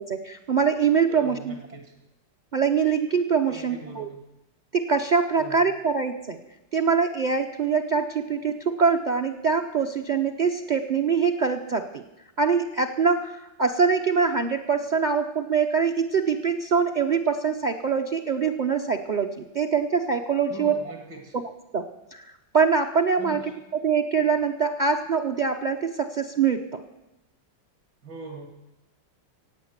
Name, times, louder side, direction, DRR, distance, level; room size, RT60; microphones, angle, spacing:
voice 1, 0.0-1.5 2.5-4.1 4.7-6.4 6.7-12.0 12.4-13.3 13.6-20.8 21.7-26.8, right 5 dB, 45° right, 7 dB, 0.5 m, -24 dB
voice 2, 1.1-1.9 3.4-4.2 5.4-5.6 20.5-21.4 23.2-23.4 28.0-28.5, right 3 dB, 65° right, 3 dB, 2.9 m, -41 dB
16.0 x 8.8 x 8.1 m, 0.96 s
omnidirectional pair, 2.1 m